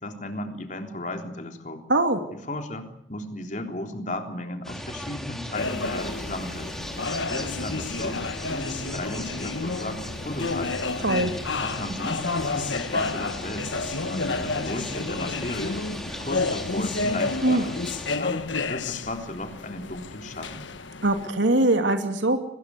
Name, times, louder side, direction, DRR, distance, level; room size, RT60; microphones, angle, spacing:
voice 1, 0.0-1.8 2.3-6.8 7.3-10.8 11.6-13.7 14.1-15.8 16.0-17.8 18.2-20.7, left 1 dB, 40° left, 4 dB, 3.6 m, -35 dB
voice 2, 1.9-2.2 11.0-11.3 17.4-17.6 21.0-22.4, right 2 dB, 80° right, 6 dB, 2.6 m, -21 dB
sound 1, 4.6-18.2, equal, ahead, 3.2 m, -37 dB
sound 2, 5.5-21.3, left 3 dB, 80° left, 1.4 m, -31 dB
23.5 x 21.0 x 8.2 m, 0.73 s
head